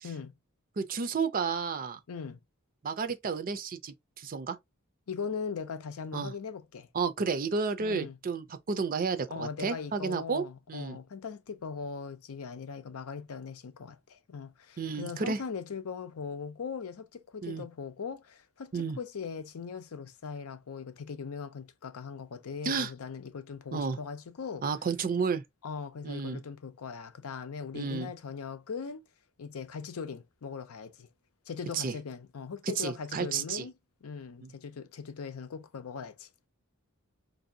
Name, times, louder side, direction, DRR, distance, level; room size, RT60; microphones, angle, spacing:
voice 1, 0.0-0.3 2.1-2.4 5.1-6.9 7.8-8.2 9.3-24.6 25.6-29.0 29.4-31.1 31.5-33.7 34.0-36.5, left 5 dB, 80° left, 0.5 m, -40 dB
voice 2, 0.8-2.0 2.8-4.6 6.1-6.3 6.9-11.0 14.8-15.4 17.4-17.6 18.7-19.0 22.6-22.9 23.7-24.0 24.6-25.4 26.0-26.4 27.7-28.1 31.7-31.9 32.8-33.6 34.4-34.5, right 5 dB, 40° right, 0.5 m, -32 dB
4.6 x 2.7 x 2.6 m
head